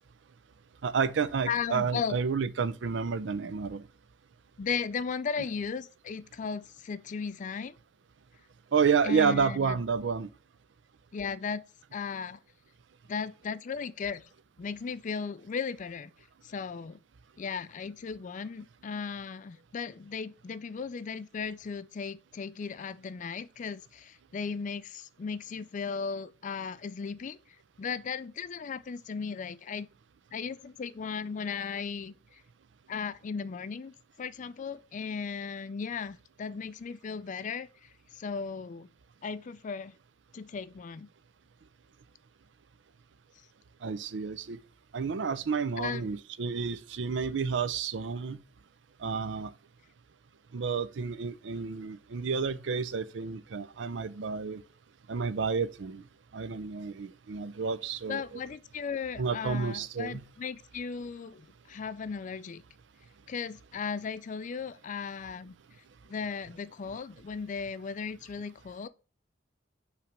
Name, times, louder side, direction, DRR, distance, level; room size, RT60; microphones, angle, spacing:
voice 1, 0.8-3.9 8.7-10.3 43.8-44.6 44.9-48.4 49.0-49.5 50.5-54.6 55.1-56.0 56.3-58.2 59.2-60.2, right 5 dB, 70° right, 0.5 m, -30 dB
voice 2, 1.5-2.2 4.6-7.8 9.0-9.8 11.1-11.6 11.9-12.4 13.1-14.2 14.6-16.1 16.4-17.0 17.4-27.4 27.8-29.9 30.3-32.4 32.9-38.9 39.2-39.9 40.3-41.1 45.8-46.1 58.1-62.6 63.3-65.5 66.1-68.9, left 5 dB, 40° left, 0.4 m, -36 dB
5.7 x 3.3 x 5.1 m
head